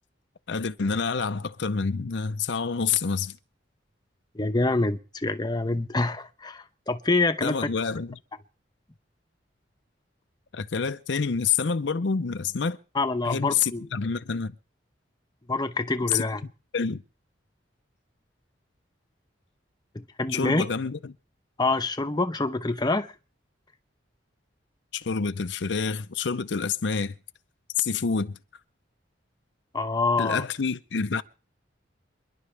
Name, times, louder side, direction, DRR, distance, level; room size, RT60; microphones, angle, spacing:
voice 1, 0.5-3.4 7.4-8.2 10.5-12.8 13.2-14.5 16.1-16.2 16.7-17.0 20.3-21.0 24.9-27.1 27.8-28.4 30.2-31.2, left 5 dB, 70° left, 0.6 m, -27 dB
voice 2, 4.3-7.6 12.9-13.9 15.5-16.4 19.9-20.7 21.6-23.1 29.7-30.4, left 2 dB, 20° left, 0.9 m, -26 dB
27.5 x 11.0 x 3.4 m
head